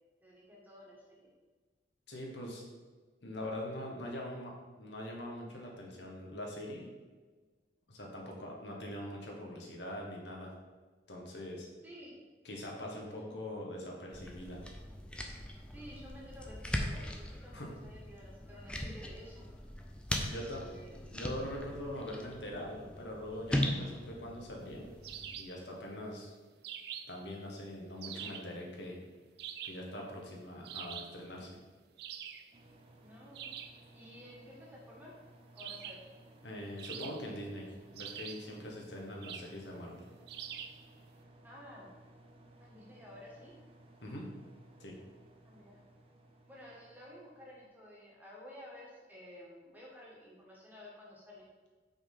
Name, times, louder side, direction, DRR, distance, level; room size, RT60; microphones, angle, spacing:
voice 1, 0.2-1.3 11.8-12.3 13.2-13.4 15.7-19.5 20.5-21.0 33.0-33.5 33.9-35.1 35.5-36.0 41.4-41.9 42.6-43.5 45.4-45.8 46.4-51.5, left 1 dB, 10° right, -5 dB, 1.9 m, -52 dB
voice 2, 2.1-2.6 3.2-6.9 7.9-10.5 11.1-11.7 12.4-14.6 17.5-17.7 20.1-20.6 20.9-24.9 25.4-26.3 27.1-29.0 29.6-31.5 36.4-37.7 37.9-40.0 44.0-44.3 44.8-44.9, left 1 dB, 85° left, -1 dB, 1.5 m, -43 dB
sound 1, 14.1-25.3, left 1 dB, 5° left, 0.6 m, -40 dB
sound 2, 25.0-25.6 26.6-27.2 28.0-28.5 29.4-29.9 30.6-31.2 32.0-32.5 33.3-33.8 35.6-36.1 36.8-37.5 38.0-38.5 39.2-39.6 40.3-40.8, right 9 dB, 65° right, 0.5 m, -45 dB
sound 3, 32.5-47.7, right 1 dB, 35° right, 0.8 m, -59 dB
5.7 x 4.3 x 5.4 m, 1.3 s
head